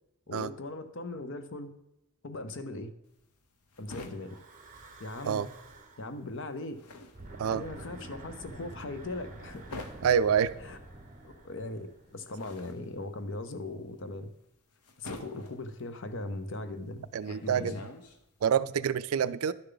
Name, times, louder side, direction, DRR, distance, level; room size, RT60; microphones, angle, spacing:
voice 1, 0.3-1.7 2.2-2.9 3.8-4.3 5.0-5.5 6.0-6.8 7.5-9.6 10.6-10.8 11.2-14.3 15.0-17.1 17.4-17.8, left 2 dB, 55° left, 10 dB, 0.7 m, -39 dB
sound 1, 3.1-5.6 5.8-18.5, left 2 dB, 90° left, 1.0 m, -48 dB
Breathing / Wind, 4.2-6.1 7.0-12.4, right 2 dB, 35° right, 1.2 m, -48 dB
voice 2, 10.0-10.5 17.1-17.7 18.4-19.5, right 8 dB, 70° right, 16 dB, 0.4 m, -27 dB
11.0 x 6.7 x 3.9 m, 0.86 s
head